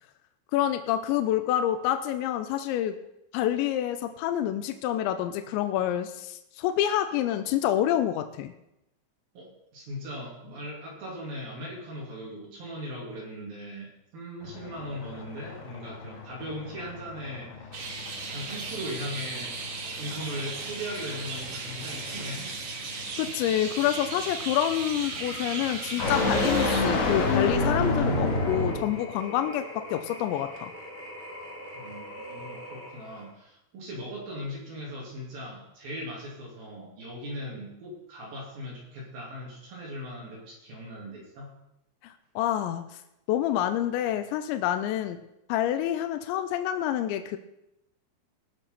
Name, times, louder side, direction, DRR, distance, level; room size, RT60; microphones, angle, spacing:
voice 1, 0.5-3.0 3.3-8.5 23.2-30.7 42.0-43.0 43.3-45.2 45.5-47.4, left 11 dB, 85° left, 8 dB, 2.7 m, -27 dB
voice 2, 9.3-17.8 18.3-19.6 20.0-22.5 31.7-41.5, equal, 55° right, -3 dB, 3.9 m, -39 dB
sound 1, 14.4-29.0, left 2 dB, 50° left, 3.3 m, -30 dB
sound 2, 17.7-26.8, right 4 dB, 85° right, 1.4 m, -36 dB
sound 3, 24.9-33.3, left 1 dB, 5° right, 3.2 m, -42 dB
19.5 x 6.7 x 5.7 m, 0.86 s
omnidirectional pair, 5.8 m